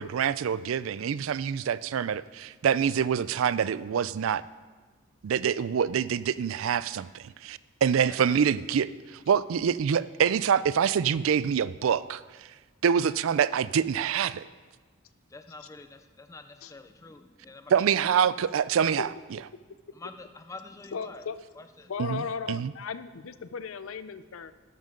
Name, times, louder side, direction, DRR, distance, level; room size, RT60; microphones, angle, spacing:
voice 1, 0.0-4.4 5.2-12.2 12.8-14.5 17.7-19.1 22.0-22.2 22.5-22.7, right 7 dB, 70° right, 17 dB, 0.3 m, -26 dB
voice 2, 8.1-8.4 15.3-18.2 19.9-21.3 21.6-21.9, left 3 dB, 15° left, 9 dB, 0.3 m, -46 dB
voice 3, 20.9-21.4 21.9-24.5, left 5 dB, 75° left, 13 dB, 0.5 m, -36 dB
12.5 x 11.0 x 3.8 m, 1.4 s
head